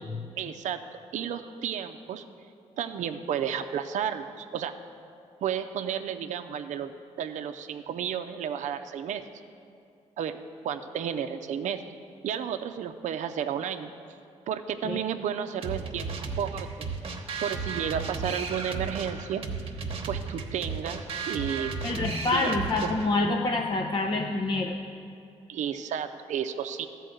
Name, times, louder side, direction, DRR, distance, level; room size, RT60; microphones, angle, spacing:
voice 1, 0.4-0.8 1.1-2.2 2.8-4.7 5.4-6.9 7.2-9.2 10.2-10.4 10.6-11.9 12.2-13.9 14.5-16.1 16.4-16.9 17.4-19.5 20.0-21.7 22.3-22.9 25.5-26.9, right 8 dB, 70° right, 7 dB, 0.5 m, -32 dB
sound 1, 15.6-23.2, right 4 dB, 45° right, 1.1 m, -34 dB
voice 2, 21.8-24.7, left 3 dB, 35° left, 1 dB, 0.7 m, -27 dB
13.0 x 4.6 x 7.8 m, 2.5 s
cardioid pair, 85°, 13 cm